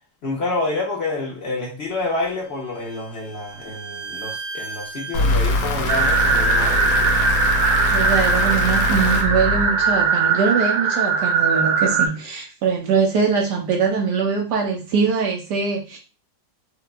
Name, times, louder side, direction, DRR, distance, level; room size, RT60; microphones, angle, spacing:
voice 1, 0.2-7.2, left 2 dB, 60° left, 0.7 m, -28 dB
Bowed string instrument, 2.1-5.9, right 4 dB, 55° right, 1.7 m, -36 dB
sound 1, 5.1-10.1, left 2 dB, 80° left, 1.4 m, -23 dB
sound 2, 5.9-12.1, right 5 dB, 90° right, 1.5 m, -20 dB
voice 2, 7.9-16.0, right 5 dB, 75° right, 1.2 m, -22 dB
4.4 x 2.2 x 2.4 m
omnidirectional pair, 2.0 m